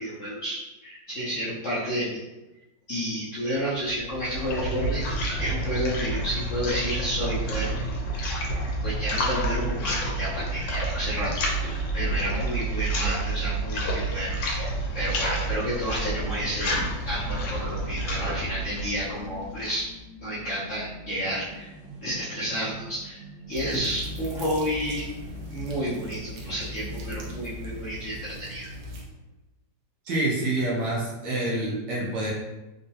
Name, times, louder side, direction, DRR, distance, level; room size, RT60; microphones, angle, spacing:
voice 1, 0.0-2.2 2.9-5.0 5.4-7.7 8.8-14.6 14.9-19.9 20.2-21.7 22.0-25.0 25.5-28.7, equal, 65° left, -8 dB, 0.8 m, -31 dB
sound 1, 3.8-19.9, right 1 dB, 80° left, 1.4 m, -29 dB
sound 2, 15.9-27.8, right 2 dB, 45° right, 1.1 m, -45 dB
sound 3, 23.5-29.0, left 1 dB, 85° right, 1.4 m, -39 dB
voice 2, 30.0-32.3, right 2 dB, 65° right, -4 dB, 1.4 m, -27 dB
3.7 x 2.2 x 2.7 m, 1.0 s
omnidirectional pair, 2.0 m